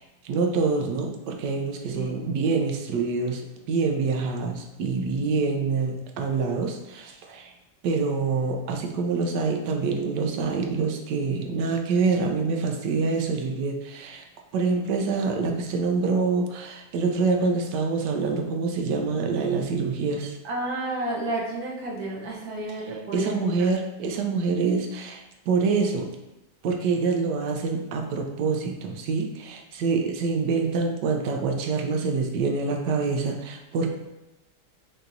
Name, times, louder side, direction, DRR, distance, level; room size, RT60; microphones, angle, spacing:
voice 1, 0.0-3.4 3.7-7.5 7.8-14.2 14.5-20.4 23.1-26.1 26.6-33.9, right 4 dB, 85° right, 2 dB, 1.2 m, -26 dB
voice 2, 1.9-2.2 20.4-23.7, right 2 dB, 65° right, -3 dB, 1.4 m, -31 dB
5.6 x 2.8 x 2.5 m, 1.0 s
omnidirectional pair, 1.8 m